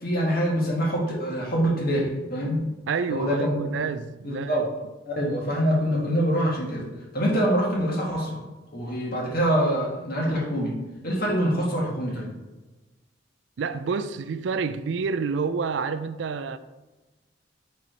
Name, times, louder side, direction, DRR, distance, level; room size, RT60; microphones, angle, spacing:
voice 1, 0.0-2.6 3.1-3.7 4.2-4.6 5.1-6.8 7.1-8.4 8.7-10.7 11.0-12.3, equal, 55° left, 1.9 m, -25 dB
voice 2, 2.9-4.7 13.6-16.6, right 5 dB, 75° right, 0.4 m, -28 dB
4.6 x 4.2 x 5.2 m
head